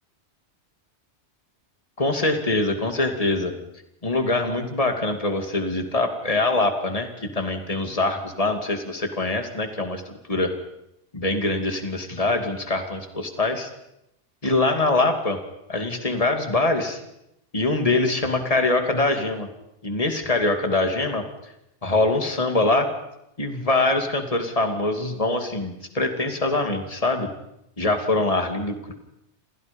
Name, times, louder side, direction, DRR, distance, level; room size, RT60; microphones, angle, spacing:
voice 1, 2.0-3.5 4.0-10.5 11.1-13.7 14.4-15.4 15.7-17.0 17.5-19.5 19.8-21.2 21.8-22.9 23.4-27.3 27.8-28.9, left 2 dB, 30° left, 5 dB, 2.8 m, -23 dB
28.5 x 28.0 x 5.4 m, 0.81 s
omnidirectional pair, 1.2 m